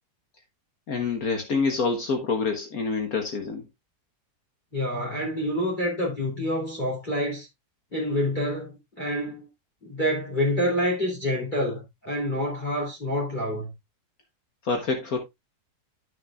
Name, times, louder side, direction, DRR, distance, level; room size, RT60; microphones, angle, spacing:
voice 1, 0.9-3.7 14.6-15.2, left 4 dB, 60° left, 1.6 m, -26 dB
voice 2, 4.7-7.5 7.9-9.5 9.8-13.7, equal, 30° left, 3.2 m, -27 dB
12.0 x 6.2 x 2.4 m
omnidirectional pair, 1.7 m